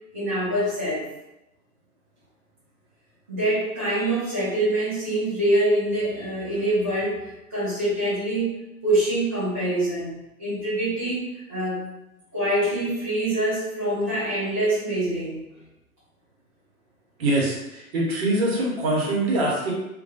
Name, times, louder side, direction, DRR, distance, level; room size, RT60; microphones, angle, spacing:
voice 1, 0.1-1.0 3.3-11.8 12.3-15.4, right 1 dB, 10° right, -15 dB, 0.3 m, -25 dB
voice 2, 17.2-19.7, right 1 dB, 45° right, -4 dB, 1.0 m, -24 dB
2.3 x 2.3 x 2.7 m, 0.93 s
figure-of-eight pair, 110°, 45 cm